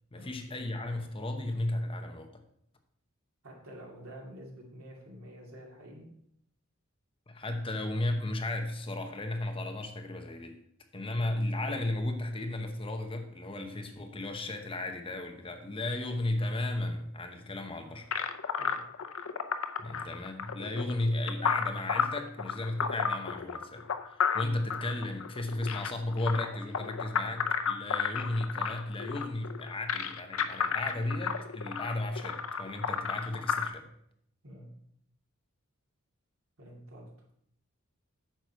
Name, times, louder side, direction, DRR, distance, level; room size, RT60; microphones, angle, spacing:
voice 1, 0.1-2.3 7.3-10.6 10.9-18.1 19.8-33.9, left 1 dB, 25° left, 5 dB, 0.9 m, -34 dB
voice 2, 3.4-6.1 11.1-11.3 18.6-18.9 24.4-24.6 34.4-34.7 36.6-37.1, equal, 75° right, -1 dB, 2.6 m, -48 dB
sound 1, 18.1-33.7, left 6 dB, 80° left, 0.6 m, -32 dB
9.1 x 6.7 x 4.5 m, 0.72 s
head